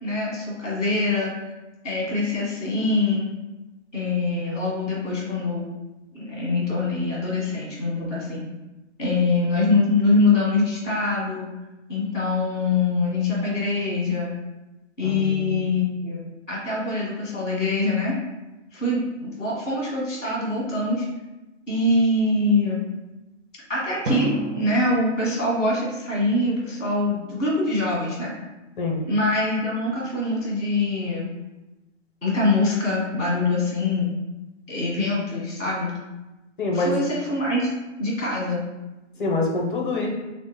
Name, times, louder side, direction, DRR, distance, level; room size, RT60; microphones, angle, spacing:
voice 1, 0.0-1.3 1.8-3.3 3.9-5.7 6.1-8.5 9.0-11.5 11.9-14.3 15.0-16.2 16.5-18.1 18.7-21.0 21.7-22.8 23.7-28.3 29.1-31.3 32.2-34.1 34.7-35.9 36.7-37.7 38.0-38.6, left 2 dB, 5° right, -15 dB, 0.5 m, -24 dB
voice 2, 15.0-15.6 28.8-29.0 36.6-36.9 39.2-40.1, left 2 dB, 45° left, 0 dB, 0.6 m, -25 dB
Drum, 24.1-27.0, right 1 dB, 75° right, 0.7 m, -34 dB
3.6 x 2.1 x 3.3 m, 1.0 s
hypercardioid pair, 170°, 36 cm